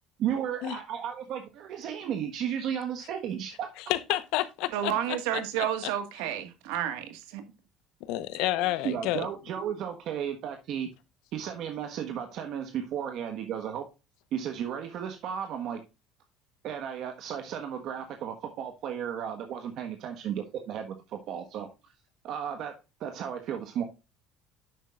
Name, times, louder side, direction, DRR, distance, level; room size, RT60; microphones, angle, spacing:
voice 1, 0.2-3.7 8.8-10.9 11.3-13.8 14.3-15.8 16.6-21.9 22.2-23.8, right 9 dB, 65° right, 1.4 m, -34 dB
voice 2, 3.9-5.2 8.0-9.3, left 15 dB, 80° left, 1.0 m, -29 dB
voice 3, 4.7-7.4 8.6-8.7 9.6-9.7, right 10 dB, 90° right, 1.6 m, -31 dB
10.0 x 7.6 x 2.4 m
cardioid pair, 110°, 0 cm